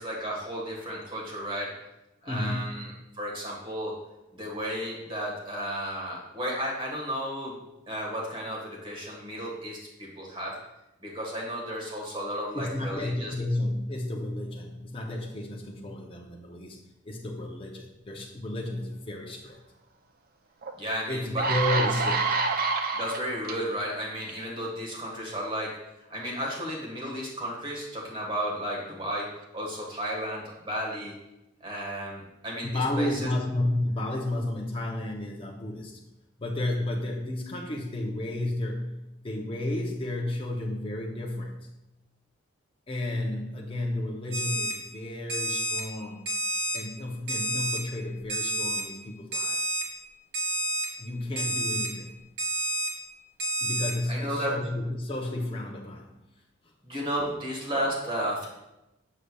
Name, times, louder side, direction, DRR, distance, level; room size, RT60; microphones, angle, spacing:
voice 1, 0.0-1.8 2.2-4.0 4.3-7.6 7.9-10.6 11.0-13.3 20.8-22.0 22.9-25.8 26.1-31.1 31.6-33.3 54.1-54.6 56.8-58.5, equal, 25° right, -4 dB, 1.4 m, -33 dB
voice 2, 2.2-2.8 12.5-19.6 21.1-22.5 32.6-36.0 36.4-41.7 42.9-46.3 46.7-49.7 51.0-52.1 53.6-56.1, left 1 dB, 25° left, 0 dB, 0.6 m, -32 dB
sound 1, 20.6-20.7 21.2-23.5 24.2-24.4, right 4 dB, 45° right, 0.4 m, -27 dB
Alarm, 44.3-44.7 45.3-45.8 46.3-46.8 47.3-47.8 48.3-48.8 49.3-49.8 50.3-50.9 51.4-51.9 52.4-52.9 53.4-53.9, right 1 dB, 75° right, 1.5 m, -29 dB
6.5 x 6.5 x 2.2 m, 0.92 s
head